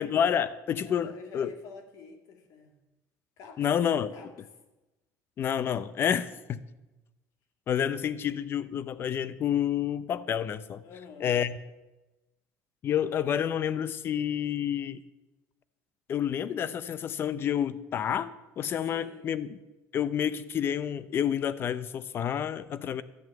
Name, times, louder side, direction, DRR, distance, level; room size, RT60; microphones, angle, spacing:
voice 1, 0.0-1.5 3.6-4.1 5.4-6.6 7.7-10.8 11.2-11.6 12.8-15.0 16.1-19.6 19.9-23.0, left 9 dB, 35° left, 15 dB, 0.6 m, -29 dB
voice 2, 0.8-2.8 3.4-3.6 4.1-4.3 10.8-11.4 18.9-19.3, left 6 dB, 60° left, 5 dB, 2.1 m, -48 dB
12.5 x 6.3 x 8.8 m, 1.1 s
cardioid pair, 155°, 7 cm